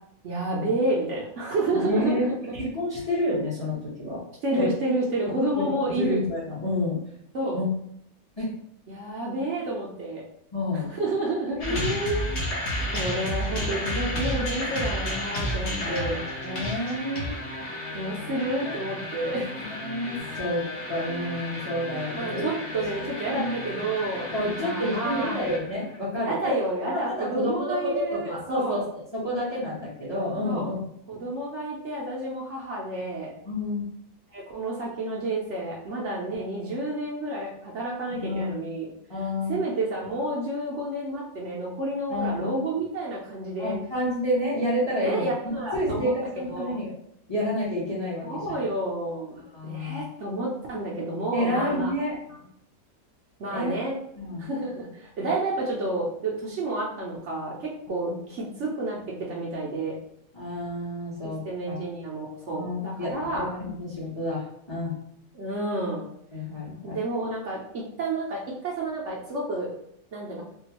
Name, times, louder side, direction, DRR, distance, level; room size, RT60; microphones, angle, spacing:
voice 1, 0.2-2.3 4.4-6.2 7.3-7.6 8.9-10.2 10.7-11.8 12.9-16.2 17.9-19.5 22.1-24.3 24.6-25.4 26.2-28.8 30.4-30.7 31.1-33.3 34.3-38.9 39.5-43.7 45.0-46.8 48.2-51.9 53.4-54.0 54.4-59.0 59.3-60.0 61.4-63.5 65.3-66.0 66.8-69.7 70.1-70.4, right 2 dB, 60° right, -4 dB, 0.9 m, -30 dB
voice 2, 1.7-2.2 2.5-4.2 4.5-4.7 5.5-7.0 7.5-7.7 8.4-8.5 10.5-10.9 11.6-12.2 15.8-17.3 18.6-18.7 19.3-19.4 19.7-22.4 23.3-23.5 24.3-26.5 26.8-28.8 29.1-30.8 33.4-33.8 38.1-38.5 39.1-39.6 42.1-42.6 43.6-46.9 47.3-48.4 49.5-50.1 51.3-52.2 53.5-53.7 54.1-54.5 58.0-58.2 60.3-61.8 62.5-64.9 66.3-67.0, left 1 dB, 20° left, -6 dB, 0.8 m, -29 dB
sound 1, 11.6-26.0, left 1 dB, 55° left, 1.0 m, -32 dB
3.6 x 2.4 x 2.8 m, 0.74 s
omnidirectional pair, 1.6 m